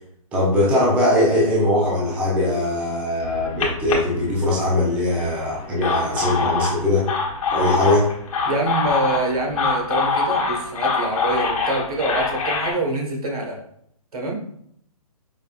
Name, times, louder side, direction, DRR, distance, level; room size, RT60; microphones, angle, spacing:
voice 1, 0.3-7.1 7.5-8.1, left 1 dB, 5° right, -5 dB, 0.5 m, -20 dB
sound 1, 3.2-4.9 5.6-12.7, left 4 dB, 65° left, 1.0 m, -24 dB
voice 2, 8.4-13.6 14.1-14.4, right 2 dB, 80° right, 0 dB, 1.2 m, -25 dB
5.0 x 2.3 x 2.3 m, 0.70 s
hypercardioid pair, 160°, 19 cm